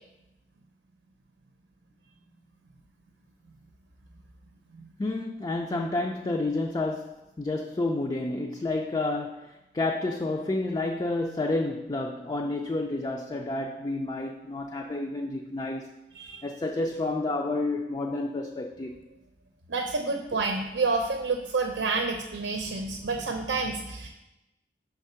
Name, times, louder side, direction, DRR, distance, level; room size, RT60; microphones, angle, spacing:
voice 1, 5.0-15.9 16.4-19.0, left 2 dB, 25° left, 0.3 m, -30 dB
voice 2, 19.7-24.1, right 3 dB, 90° right, 0.7 m, -29 dB
5.9 x 3.6 x 5.6 m
head